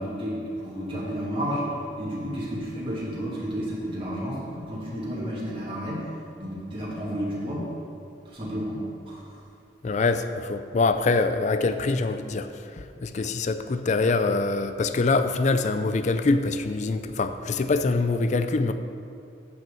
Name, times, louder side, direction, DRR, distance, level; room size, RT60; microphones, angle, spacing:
voice 1, 0.0-1.7 2.0-6.1 6.4-7.7 8.2-8.8 9.1-9.3, equal, 30° right, -7 dB, 2.4 m, -31 dB
voice 2, 9.8-18.7, left 3 dB, 40° left, 9 dB, 0.4 m, -24 dB
7.9 x 6.2 x 6.9 m, 2.5 s
head